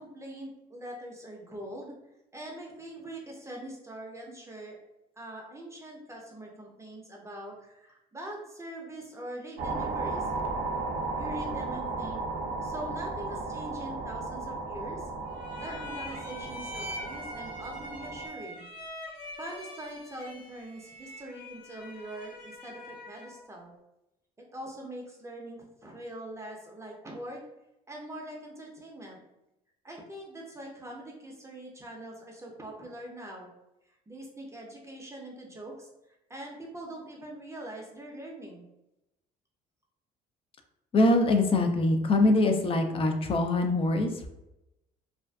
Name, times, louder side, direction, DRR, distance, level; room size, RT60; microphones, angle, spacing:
voice 1, 0.0-1.9 2.3-4.8 5.2-10.3 11.2-12.2 12.6-15.1 15.6-18.7 19.4-23.7 24.5-27.4 27.9-29.2 29.8-33.5 33.9-38.6, right 1 dB, 20° right, -1 dB, 0.6 m, -43 dB
sound 1, 9.6-18.3, right 3 dB, 65° right, 0.4 m, -35 dB
sound 2, 15.3-23.4, left 1 dB, 55° left, 0.8 m, -44 dB
voice 2, 40.9-44.3, left 2 dB, 35° left, 5 dB, 0.4 m, -23 dB
2.4 x 2.2 x 2.3 m, 0.90 s
supercardioid pair, 85°, 16 cm